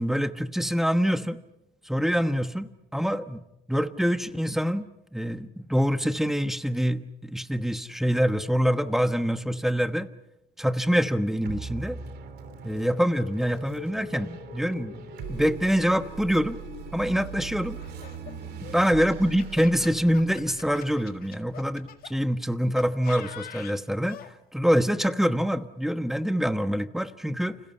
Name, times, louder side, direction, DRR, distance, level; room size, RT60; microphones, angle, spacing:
voice 1, 0.0-1.4 1.8-3.4 3.7-4.9 5.1-10.1 10.6-12.0 12.6-16.6 16.9-17.8 18.6-24.2 24.5-27.6, equal, ahead, 10 dB, 1.2 m, -25 dB
sound 1, 11.5-22.2, right 7 dB, 70° right, 3.2 m, -41 dB
sound 2, 12.4-21.3, left 7 dB, 85° left, 5.2 m, -47 dB
Laughter, 17.8-22.1 22.8-24.3, left 10 dB, 60° left, 1.9 m, -45 dB
29.5 x 27.0 x 5.6 m, 0.89 s
cardioid pair, 110°, 17 cm